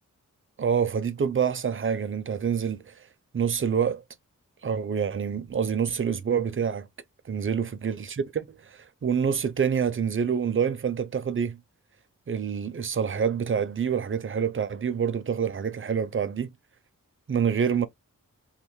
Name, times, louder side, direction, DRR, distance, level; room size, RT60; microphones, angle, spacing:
voice 1, 0.6-3.1 3.3-4.0 4.6-6.9 7.3-11.6 12.3-16.5 17.3-17.9, right 7 dB, 40° right, 0.5 m, -27 dB
3.2 x 2.2 x 3.0 m
wide cardioid pair, 70°, 33 cm